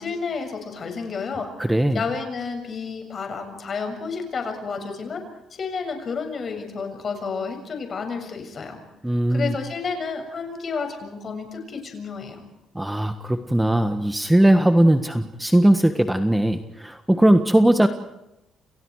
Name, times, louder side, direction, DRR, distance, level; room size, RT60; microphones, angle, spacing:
voice 1, 0.0-1.5 1.9-5.2 5.5-8.8 9.3-12.4, left 5 dB, 40° left, 5 dB, 7.0 m, -31 dB
voice 2, 1.6-2.0 9.0-9.5 12.7-17.9, right 1 dB, 5° right, 8 dB, 1.5 m, -19 dB
29.5 x 29.5 x 4.9 m, 0.90 s
cardioid pair, 135°, 0 cm